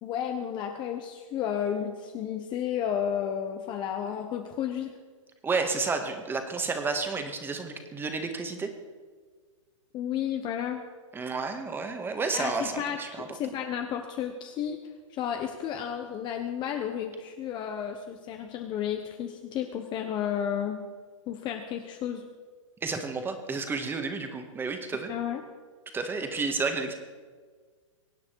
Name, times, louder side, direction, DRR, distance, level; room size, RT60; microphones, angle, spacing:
voice 1, 0.0-4.9 9.9-10.8 12.3-14.8 15.1-20.8 21.3-22.2 25.1-25.4, left 9 dB, 25° left, 4 dB, 1.2 m, -32 dB
voice 2, 5.4-8.7 11.1-13.4 22.8-25.1 25.9-27.0, right 4 dB, 10° right, 6 dB, 1.8 m, -31 dB
23.5 x 9.5 x 4.8 m, 1.5 s
hypercardioid pair, 125°, 17 cm